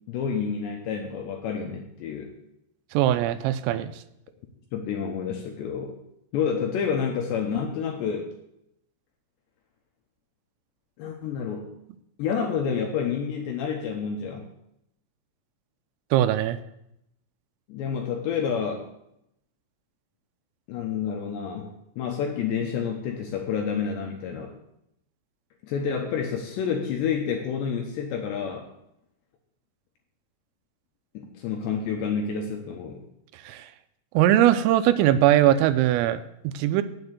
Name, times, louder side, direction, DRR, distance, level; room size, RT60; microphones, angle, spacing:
voice 1, 0.1-2.3 4.7-6.0 6.3-8.3 11.0-11.7 12.2-14.5 17.7-18.8 20.7-24.6 25.6-28.7 31.1-33.0, left 6 dB, 75° left, 2 dB, 2.7 m, -29 dB
voice 2, 2.9-3.9 16.1-16.6 33.4-33.7 34.1-36.8, right 12 dB, 85° right, 11 dB, 3.2 m, -21 dB
9.1 x 7.7 x 8.0 m, 0.80 s
omnidirectional pair, 6.0 m